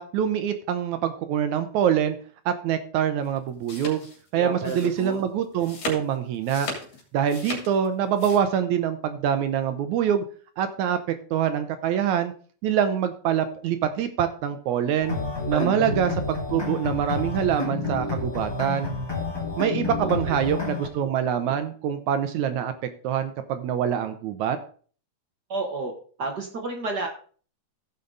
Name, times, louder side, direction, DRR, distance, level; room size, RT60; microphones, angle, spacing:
voice 1, 0.0-2.2 2.5-4.1 4.3-6.7 7.1-10.2 10.6-11.0 11.3-12.3 12.6-15.2 15.5-18.9 19.6-24.6, right 9 dB, 75° right, 9 dB, 2.0 m, -25 dB
sound 1, 3.2-8.4, left 3 dB, 80° left, 4.2 m, -37 dB
voice 2, 4.3-5.2 15.5-16.0 20.0-20.6 25.5-25.9 26.2-27.1, right 3 dB, 55° right, 2 dB, 1.1 m, -31 dB
sound 2, 15.0-20.9, left 4 dB, 10° left, 1.2 m, -30 dB
15.0 x 5.7 x 3.9 m, 0.43 s
omnidirectional pair, 3.7 m